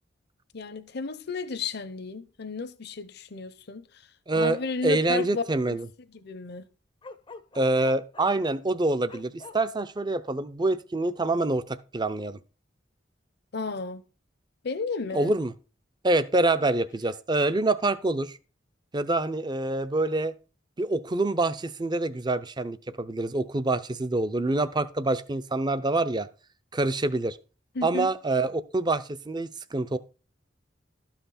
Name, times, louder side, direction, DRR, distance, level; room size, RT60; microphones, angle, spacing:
voice 1, 0.5-4.0 4.3-5.8 6.1-6.7 13.5-14.0 14.6-15.3 27.7-28.1, left 4 dB, 60° left, 0.8 m, -33 dB
voice 2, 4.3-4.6 4.8-5.9 7.5-12.4 15.1-15.5 16.0-18.4 18.9-20.3 20.8-26.3 26.7-27.4 27.8-30.0, right 2 dB, 25° right, 0.6 m, -26 dB
Bark, 7.0-8.4 9.1-9.6, left 3 dB, 25° left, 0.6 m, -44 dB
12.5 x 5.8 x 4.2 m
head